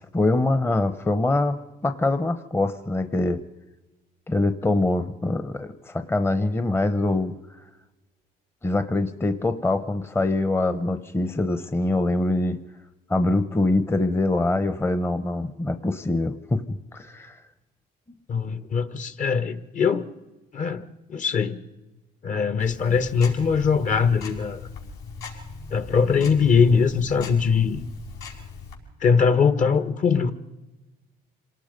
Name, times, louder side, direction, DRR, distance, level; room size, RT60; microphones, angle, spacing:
voice 1, 0.0-3.4 4.3-7.3 8.6-12.6 13.1-17.4, left 2 dB, 15° left, 10 dB, 0.9 m, -24 dB
voice 2, 18.3-20.1 20.5-21.6 22.2-24.7 25.7-27.9 29.0-30.3, left 6 dB, 50° left, 11 dB, 1.4 m, -21 dB
Tick-tock, 22.6-28.8, left 4 dB, 75° left, 5.8 m, -40 dB
27.0 x 18.5 x 5.3 m, 1.1 s
cardioid pair, 110°, 17 cm